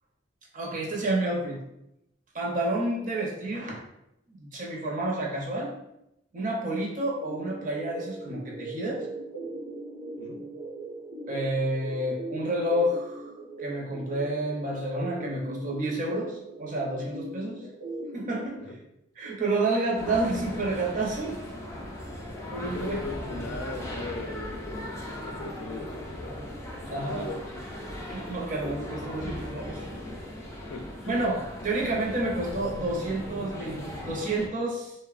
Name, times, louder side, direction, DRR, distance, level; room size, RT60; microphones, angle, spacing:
voice 1, 0.5-1.6 2.3-3.8 4.4-5.7 6.3-9.1 11.3-13.3 13.6-17.6 18.1-18.6 19.2-21.4 22.5-23.0 26.9-27.3 28.1-29.8 31.1-34.9, right 1 dB, 40° right, -2 dB, 0.5 m, -29 dB
sound 1, 7.2-18.5, right 2 dB, 75° right, 0.8 m, -40 dB
sound 2, 20.0-34.5, left 1 dB, 15° left, 0.3 m, -38 dB
voice 2, 22.7-24.8 25.2-26.4 26.8-27.4 30.7-31.1, left 3 dB, 85° left, 3 dB, 0.4 m, -38 dB
3.1 x 2.0 x 2.3 m, 0.85 s
head